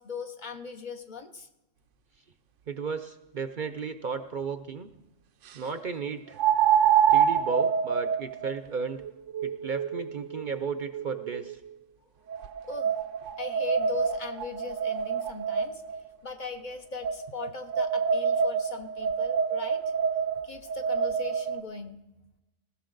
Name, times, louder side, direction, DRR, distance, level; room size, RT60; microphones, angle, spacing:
voice 1, 0.0-1.5 12.7-12.9 13.4-15.8 16.2-19.8 20.4-22.0, left 4 dB, 45° left, 6 dB, 0.9 m, -39 dB
voice 2, 2.7-4.9 5.5-6.4 7.1-9.0 9.4-11.6, right 5 dB, 50° right, 10 dB, 0.7 m, -34 dB
sound 1, 3.8-3.9 6.4-11.5 12.3-16.0 17.0-21.6, right 7 dB, 85° right, 1.0 m, -27 dB
19.5 x 15.5 x 3.9 m, 0.98 s
omnidirectional pair, 1.2 m